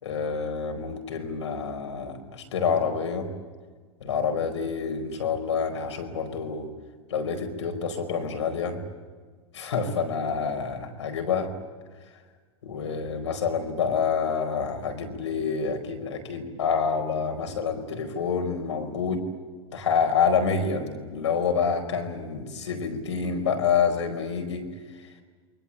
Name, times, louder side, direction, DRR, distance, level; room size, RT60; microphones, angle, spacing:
voice 1, 0.0-3.3 4.0-6.7 7.1-8.8 9.5-11.5 12.6-19.2 19.7-24.7, left 6 dB, 85° left, 5 dB, 4.8 m, -27 dB
28.5 x 23.0 x 8.5 m, 1.5 s
hypercardioid pair, 100°, 15 cm